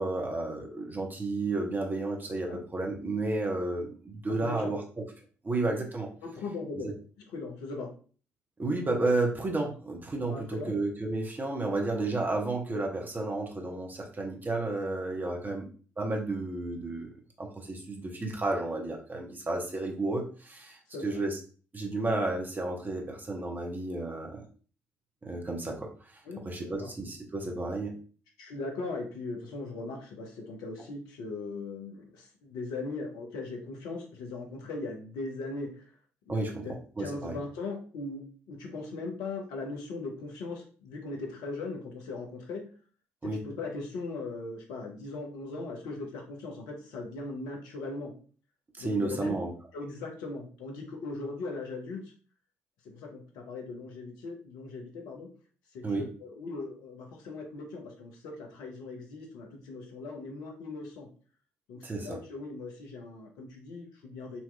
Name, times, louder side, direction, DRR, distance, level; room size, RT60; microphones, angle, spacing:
voice 1, 0.0-5.0 5.4-6.1 6.7-6.9 8.6-15.7 16.0-17.1 17.4-21.4 21.7-24.4 25.2-26.1 26.4-28.0 36.3-36.7 37.0-37.3 43.2-43.5 48.7-49.5 55.8-56.1 61.8-62.2, right 2 dB, 25° right, 1 dB, 1.0 m, -32 dB
voice 2, 4.4-4.8 6.2-6.9 7.3-7.9 10.3-10.7 15.4-15.6 20.9-21.2 26.2-26.9 28.4-35.9 36.3-42.7 43.2-48.1 48.8-49.3 49.7-52.1 52.8-55.3 55.7-61.1 61.7-64.4, left 3 dB, 65° left, 1 dB, 0.9 m, -39 dB
4.2 x 2.9 x 2.3 m, 0.40 s
figure-of-eight pair, 45°, 7 cm